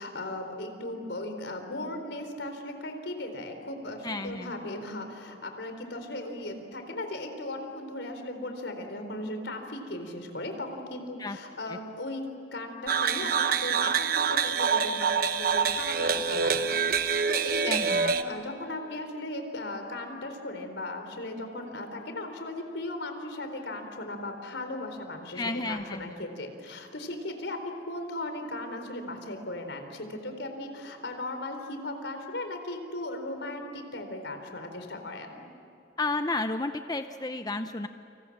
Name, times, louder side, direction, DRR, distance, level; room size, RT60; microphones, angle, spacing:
voice 1, 0.0-12.3 12.5-27.6 27.9-35.4, left 1 dB, 75° left, 6 dB, 4.1 m, -37 dB
voice 2, 4.0-4.5 11.2-11.4 11.7-11.8 17.6-18.1 25.3-26.2 36.0-37.9, left 2 dB, 20° left, 8 dB, 0.7 m, -32 dB
sound 1, 12.9-18.2, right 6 dB, 50° right, 1.1 m, -26 dB
29.5 x 27.0 x 7.4 m, 2.9 s
head